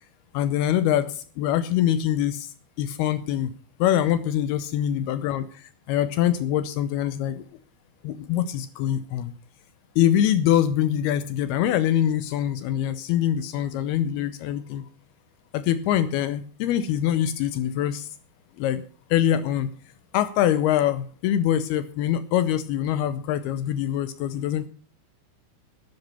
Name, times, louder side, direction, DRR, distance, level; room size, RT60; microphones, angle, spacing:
voice 1, 0.3-3.5 3.8-7.4 8.0-9.3 10.0-14.8 15.5-18.1 18.6-18.8 19.1-19.7 20.1-24.7, left 11 dB, 80° left, 13 dB, 2.4 m, -24 dB
11.5 x 9.8 x 6.8 m, 0.42 s
omnidirectional pair, 5.0 m